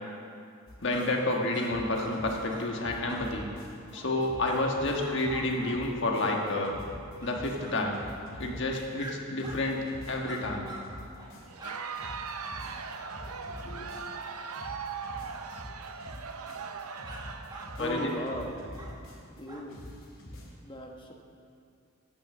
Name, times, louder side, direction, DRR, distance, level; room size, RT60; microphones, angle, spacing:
sound 1, 0.7-1.4 1.6-3.9 4.2-9.1 9.4-11.7 12.0-14.3 14.5-19.4 19.7-20.5, left 1 dB, 75° left, 2.5 m, -46 dB
voice 1, 0.8-3.5 3.9-6.8 7.2-8.0 8.4-9.8 10.1-10.7 13.6-13.9 17.8-18.1, left 2 dB, 55° left, 0 dB, 1.4 m, -30 dB
sound 2, 0.9-1.1 1.5-1.7 1.9-2.1 2.5-2.7 3.1-3.3 3.9-4.1 4.4-4.6 5.0-5.8 6.2-6.4 7.2-7.3 7.6-7.8 9.0-9.1 9.4-9.6 10.2-10.9 11.1-11.3 11.6-11.8 17.0-17.2 17.5-18.3 18.7-18.9 19.5-19.6, right 2 dB, 20° right, 1.1 m, -45 dB
Crowd, 11.5-19.0, right 5 dB, 85° right, 0.7 m, -40 dB
voice 2, 17.8-18.6 19.3-19.9 20.6-21.1, equal, 20° left, 1 dB, 1.1 m, -36 dB
9.7 x 8.4 x 7.4 m, 2.4 s
head